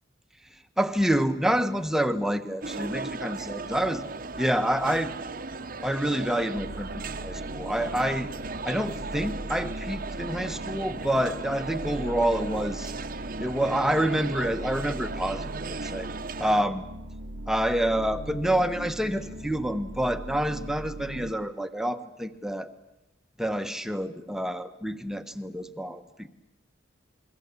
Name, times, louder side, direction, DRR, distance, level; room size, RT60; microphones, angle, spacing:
voice 1, 0.8-4.1 4.4-5.1 5.8-8.3 8.6-12.9 13.4-16.1 16.4-16.8 17.5-22.7 23.4-26.3, right 1 dB, 5° right, 8 dB, 1.3 m, -27 dB
sound 1, 2.6-16.6, right 3 dB, 50° right, 1.1 m, -37 dB
sound 2, 6.5-21.3, right 1 dB, 70° right, 1.2 m, -39 dB
28.0 x 22.5 x 8.5 m, 0.91 s
head